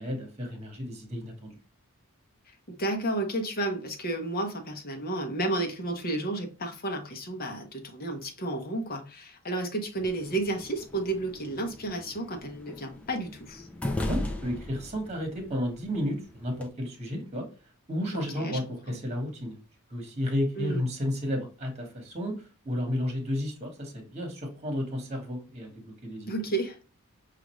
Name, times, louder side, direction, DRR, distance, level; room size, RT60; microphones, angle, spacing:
voice 1, 0.0-1.6 14.1-17.4 17.9-19.6 19.9-22.3 22.6-26.3, left 1 dB, 30° right, 1.2 m, -32 dB
voice 2, 2.7-13.7 18.1-18.6 20.6-20.8 26.3-26.8, right 2 dB, 40° left, 0.9 m, -32 dB
sound 1, 10.0-16.7, left 1 dB, 5° left, 0.5 m, -38 dB
6.5 x 2.5 x 3.1 m
head